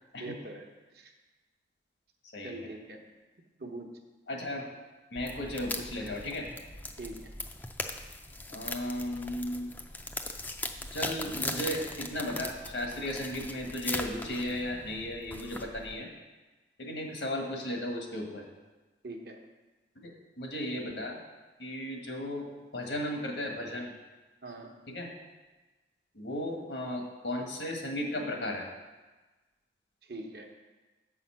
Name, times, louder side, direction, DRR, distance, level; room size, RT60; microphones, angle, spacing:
voice 1, 0.2-0.7 0.9-1.1 2.4-3.0 3.6-3.9 7.0-7.3 19.0-19.4 24.4-24.7 30.0-30.5, right 2 dB, 65° right, 3 dB, 1.0 m, -42 dB
voice 2, 2.3-2.7 4.3-4.7 5.1-6.5 8.5-9.7 10.9-16.1 16.8-18.4 20.0-20.1 20.4-21.2 21.6-22.5 22.7-23.9 24.9-25.1 26.1-28.7, left 1 dB, 90° left, 1 dB, 1.6 m, -35 dB
sound 1, 5.2-15.9, left 2 dB, 10° left, 0.4 m, -39 dB
7.7 x 5.7 x 5.7 m, 1.2 s
head